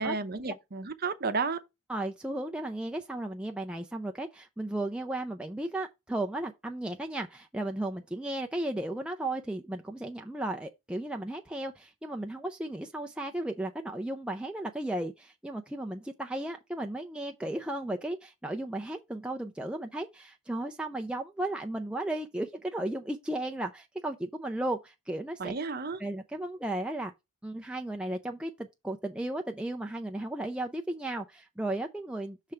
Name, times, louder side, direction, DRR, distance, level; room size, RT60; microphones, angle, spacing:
voice 1, 0.0-1.6 25.4-26.0, right 4 dB, 45° right, 0.7 m, -32 dB
voice 2, 1.9-25.5 26.0-27.1 27.4-32.5, right 1 dB, 5° right, 0.4 m, -35 dB
6.2 x 3.2 x 5.7 m
head